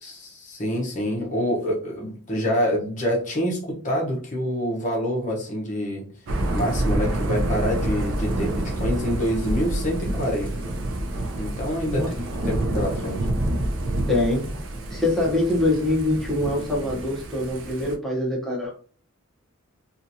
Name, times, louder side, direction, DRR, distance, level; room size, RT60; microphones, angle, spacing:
voice 1, 0.0-6.0 6.5-10.7 11.4-13.3, equal, 35° left, -2 dB, 0.8 m, -27 dB
Thunder / Rain, 6.3-17.9, right 1 dB, 55° right, 0.4 m, -28 dB
voice 2, 11.8-12.1 14.1-14.4 14.9-18.7, left 2 dB, ahead, -4 dB, 0.8 m, -24 dB
2.8 x 2.4 x 2.6 m, 0.42 s
head